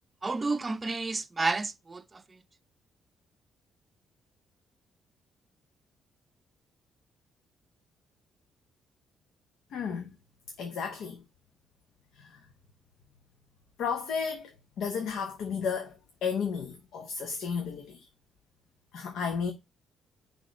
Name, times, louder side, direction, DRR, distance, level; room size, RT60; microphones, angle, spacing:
voice 1, 0.2-2.2, right 3 dB, 25° right, 0.5 m, -31 dB
voice 2, 9.7-10.1 10.6-11.2 12.1-12.3 13.8-14.5 14.8-18.1 18.9-19.5, left 6 dB, 80° left, 0.9 m, -33 dB
6.1 x 3.3 x 5.1 m
cardioid pair, 90°, 0 cm